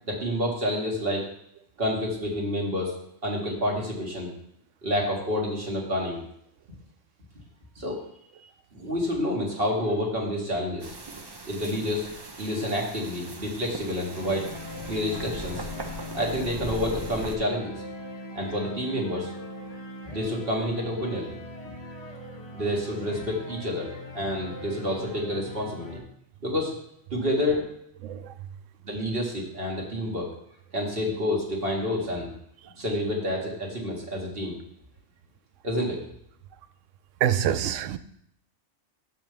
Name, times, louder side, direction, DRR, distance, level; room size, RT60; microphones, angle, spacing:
voice 1, 0.1-1.2 1.8-2.9 3.2-4.3 4.8-6.2 7.8-8.0 8.7-10.9 11.5-12.1 12.4-14.5 14.9-15.7 16.1-17.8 18.3-19.3 20.1-21.4 22.5-25.9 26.4-26.7 27.1-27.6 28.8-30.3 30.7-32.3 32.8-34.6 35.6-36.0, left 1 dB, 50° right, 2.1 m, -28 dB
sound 1, 10.8-17.4, right 2 dB, 25° right, 0.6 m, -40 dB
sound 2, 14.1-26.0, left 2 dB, 30° left, 1.2 m, -40 dB
voice 2, 28.0-28.4 32.6-32.7 37.2-38.0, right 10 dB, 80° right, 0.9 m, -26 dB
10.0 x 3.6 x 6.7 m
omnidirectional pair, 1.3 m